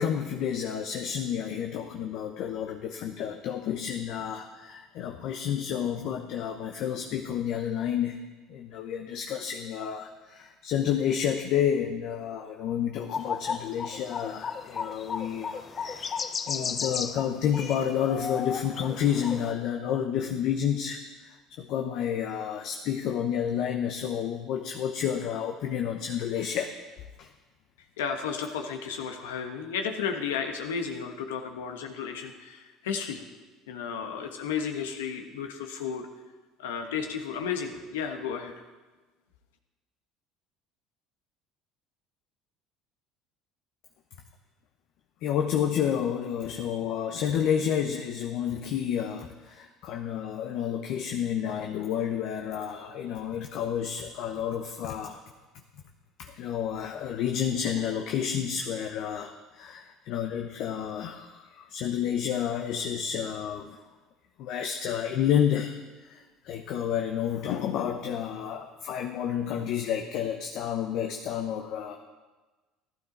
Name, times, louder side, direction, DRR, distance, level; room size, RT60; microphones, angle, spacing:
voice 1, 0.0-8.2 8.5-26.7 27.2-27.3 45.2-55.2 56.2-63.8 64.4-72.0, left 9 dB, 65° left, 4 dB, 0.9 m, -30 dB
sound 1, 13.1-19.5, left 5 dB, 35° left, 0.7 m, -34 dB
voice 2, 28.0-33.2 33.7-36.1 36.6-38.5, left 6 dB, 90° left, 5 dB, 1.3 m, -33 dB
15.0 x 12.0 x 4.0 m, 1.3 s
hypercardioid pair, 80°, 0 cm